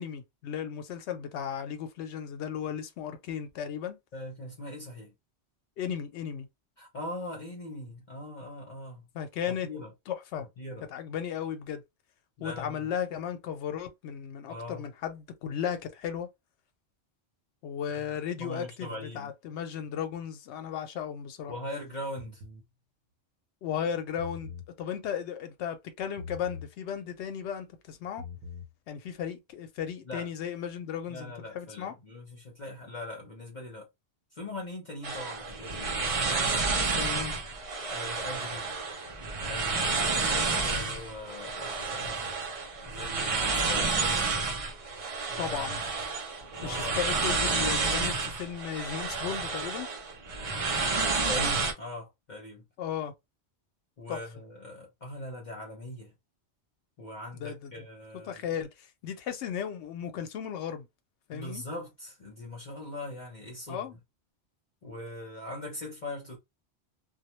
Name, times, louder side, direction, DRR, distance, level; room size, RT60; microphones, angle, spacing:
voice 1, 0.0-4.0 5.8-6.5 9.1-9.7 10.1-10.5 10.9-11.8 12.4-16.3 17.6-21.5 23.6-28.2 28.9-31.9 36.9-37.4 45.4-45.8 46.6-49.9 52.8-53.1 54.1-54.2 57.3-57.7 58.3-60.9 61.3-61.6 63.7-64.0, left 8 dB, 80° left, 0.9 m, -35 dB
voice 2, 4.1-5.1 6.8-9.1 9.5-9.9 10.6-10.9 12.4-12.9 14.5-14.9 17.9-18.0 18.4-19.3 21.5-22.4 30.0-30.3 31.1-33.9 34.3-36.0 37.9-38.7 39.4-42.2 42.9-44.3 45.3-45.8 46.6-46.9 51.3-52.6 54.0-56.1 57.0-58.4 61.3-63.9 64.8-66.4, left 1 dB, 45° left, 0.8 m, -41 dB
sound 1, 22.2-22.7 24.0-24.7 26.2-26.7 28.0-28.7, left 5 dB, 75° right, 0.8 m, -42 dB
sound 2, 35.0-51.7, right 4 dB, 40° right, 0.5 m, -30 dB
2.1 x 2.1 x 3.0 m
omnidirectional pair, 1.1 m